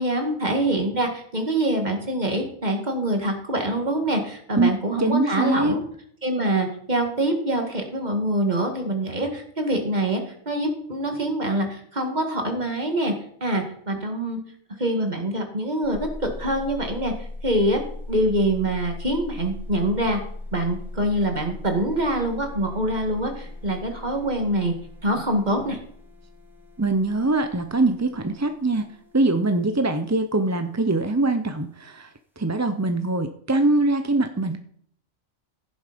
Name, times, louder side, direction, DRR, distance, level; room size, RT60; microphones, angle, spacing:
voice 1, 0.0-5.8 6.2-13.1 13.4-14.4 14.8-17.1 17.4-17.8 18.1-20.2 20.5-24.7 25.0-25.8, right 1 dB, 40° right, 4 dB, 2.2 m, -25 dB
voice 2, 5.0-5.8 26.8-32.1 32.4-34.6, right 2 dB, 20° right, 8 dB, 0.5 m, -23 dB
sound 1, 15.8-30.3, left 2 dB, ahead, 2.1 m, -39 dB
15.5 x 7.1 x 5.2 m, 0.64 s
omnidirectional pair, 1.2 m